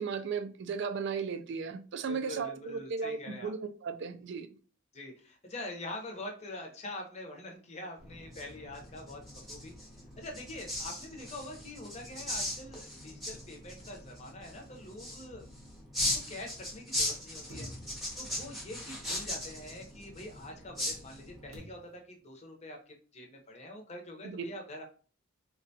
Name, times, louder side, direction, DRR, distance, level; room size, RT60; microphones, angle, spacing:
voice 1, 0.0-4.5 24.2-24.4, right 5 dB, 55° right, 0.3 m, -36 dB
voice 2, 2.1-3.5 4.9-9.2 9.5-9.7 10.2-15.5 15.9-17.7 18.2-24.8, left 1 dB, 30° left, 0.7 m, -45 dB
sound 1, 8.0-21.6, left 1 dB, ahead, 0.7 m, -39 dB
sound 2, 17.5-19.0 21.5-22.1, equal, 90° right, 0.8 m, -50 dB
3.7 x 2.2 x 2.7 m
head